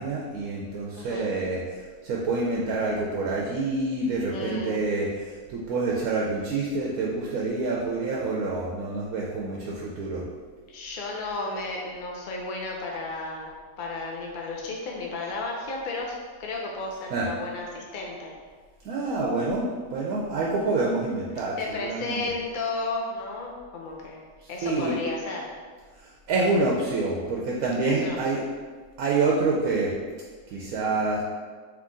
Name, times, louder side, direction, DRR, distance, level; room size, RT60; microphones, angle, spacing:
voice 1, 0.0-1.6 2.0-5.1 5.5-10.2 17.1-17.3 18.8-19.6 19.9-22.2 24.6-24.9 26.3-28.4 29.0-29.9 30.5-31.2, right 3 dB, 80° right, -3 dB, 1.0 m, -27 dB
voice 2, 1.0-1.3 4.3-4.8 10.7-13.5 13.8-18.3 21.6-24.2 24.5-25.5 28.0-28.2, left 3 dB, 75° left, -1 dB, 0.4 m, -33 dB
3.7 x 3.0 x 3.7 m, 1.5 s
omnidirectional pair, 1.5 m